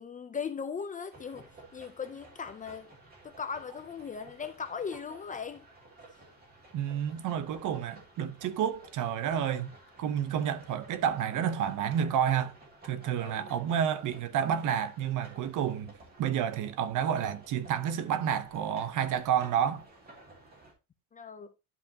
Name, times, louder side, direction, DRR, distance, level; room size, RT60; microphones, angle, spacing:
voice 1, 0.0-2.9 3.2-5.7 13.2-13.6 21.1-21.5, left 6 dB, 20° left, 0.5 m, -39 dB
sound 1, 1.1-20.7, right 2 dB, 25° right, 2.5 m, -54 dB
voice 2, 6.7-9.7 10.0-12.5 12.8-15.9 16.2-19.8, right 9 dB, 55° right, 0.9 m, -30 dB
11.0 x 5.4 x 2.8 m
cardioid pair, 175°, 36 cm